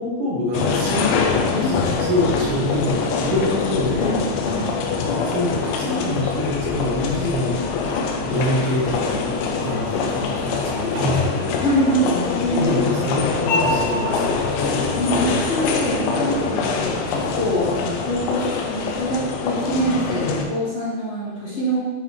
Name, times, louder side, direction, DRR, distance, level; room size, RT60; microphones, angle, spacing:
voice 1, 0.0-4.2 5.2-7.6 8.2-11.6 12.6-14.4, left 1 dB, 90° right, -4 dB, 4.0 m, -25 dB
walking in autoparking, 0.5-20.5, left 4 dB, 85° left, 3.1 m, -23 dB
voice 2, 4.0-4.7 11.6-12.8 14.9-21.8, right 1 dB, 45° left, -10 dB, 2.6 m, -24 dB
9.8 x 5.6 x 3.2 m, 1.3 s
omnidirectional pair, 5.2 m